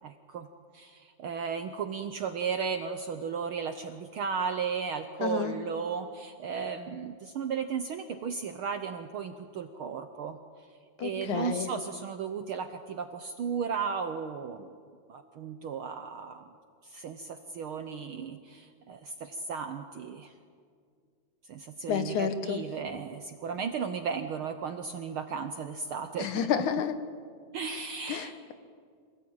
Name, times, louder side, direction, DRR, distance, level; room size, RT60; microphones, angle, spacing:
voice 1, 0.0-0.5 0.7-10.4 11.0-14.7 15.1-16.4 16.8-20.3 21.4-26.5 27.5-28.3, right 6 dB, 70° right, 8 dB, 1.3 m, -35 dB
voice 2, 5.2-5.6 11.0-11.7 21.9-22.6 26.2-27.0 28.1-28.5, left 8 dB, 85° left, 10 dB, 2.7 m, -30 dB
26.0 x 17.5 x 8.8 m, 2.2 s
omnidirectional pair, 3.4 m